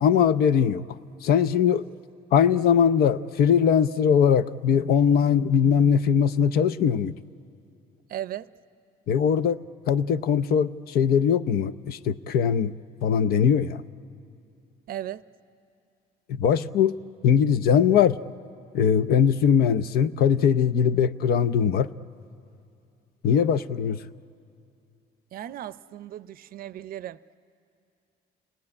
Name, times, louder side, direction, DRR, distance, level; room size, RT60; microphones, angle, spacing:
voice 1, 0.0-0.9 1.2-1.9 2.3-7.1 9.1-9.6 9.9-12.7 13.0-13.8 16.3-17.0 17.2-18.2 18.7-21.9 23.2-24.0, left 7 dB, 65° left, 14 dB, 0.6 m, -21 dB
voice 2, 8.1-8.5 14.9-15.2 25.3-27.2, right 12 dB, 60° right, 16 dB, 0.5 m, -36 dB
29.5 x 19.5 x 9.7 m, 2.6 s
cardioid pair, 110°, 17 cm